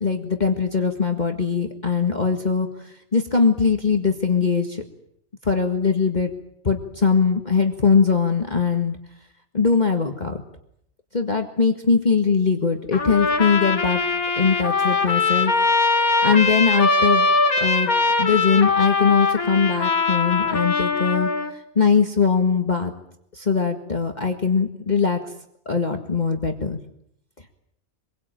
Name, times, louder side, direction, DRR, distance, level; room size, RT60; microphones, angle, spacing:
voice 1, 0.0-4.8 5.4-6.3 6.6-9.0 9.5-10.4 11.1-14.0 14.4-15.5 16.2-17.3 17.6-17.9 18.2-21.3 21.8-22.9 23.3-25.2 25.7-26.8, left 5 dB, 30° left, 4 dB, 1.9 m, -21 dB
Trumpet, 12.9-21.5, left 3 dB, 80° left, 2.3 m, -21 dB
26.0 x 22.0 x 9.0 m, 0.74 s
omnidirectional pair, 1.5 m